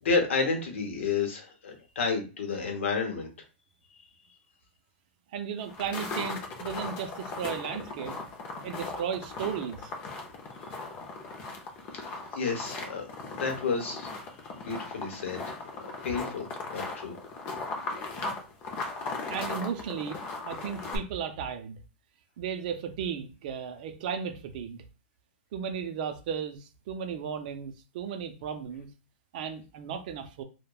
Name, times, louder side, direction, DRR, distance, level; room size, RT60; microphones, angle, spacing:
voice 1, 0.0-3.3 11.9-12.0 12.3-14.1 14.5-16.5 16.7-17.2, left 4 dB, 90° left, 0.9 m, -31 dB
voice 2, 5.3-8.2 8.6-9.9 19.3-20.2 20.4-21.8 22.4-24.8 25.5-28.9 29.3-30.4, right 7 dB, 45° right, 0.4 m, -35 dB
sound 1, 5.6-21.0, left 3 dB, 25° left, 0.5 m, -38 dB
3.0 x 2.1 x 2.2 m
supercardioid pair, 165°, 7 cm